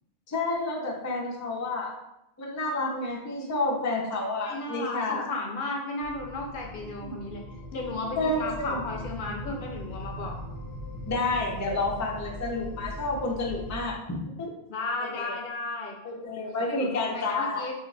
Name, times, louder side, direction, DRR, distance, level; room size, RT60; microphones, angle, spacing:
voice 1, 0.3-1.9 2.4-5.3 6.8-7.1 8.2-8.8 11.1-14.5 15.1-15.3 16.0-17.7, left 2 dB, 25° left, -2 dB, 0.4 m, -30 dB
voice 2, 4.2-7.4 7.7-10.4 14.7-16.0 16.6-17.7, left 2 dB, 60° left, 1 dB, 0.7 m, -34 dB
sound 1, 6.0-13.9, equal, 90° left, 0.9 m, -40 dB
3.0 x 2.4 x 3.9 m, 0.88 s
omnidirectional pair, 1.1 m